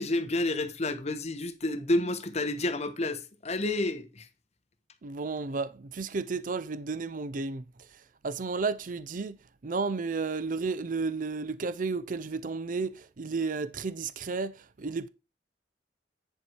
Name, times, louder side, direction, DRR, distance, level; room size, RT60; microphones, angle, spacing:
voice 1, 0.0-4.3, left 2 dB, 40° left, 1.0 m, -30 dB
voice 2, 5.0-7.6 8.2-9.4 9.6-15.1, right 4 dB, 50° right, 0.5 m, -32 dB
10.0 x 4.5 x 4.5 m
head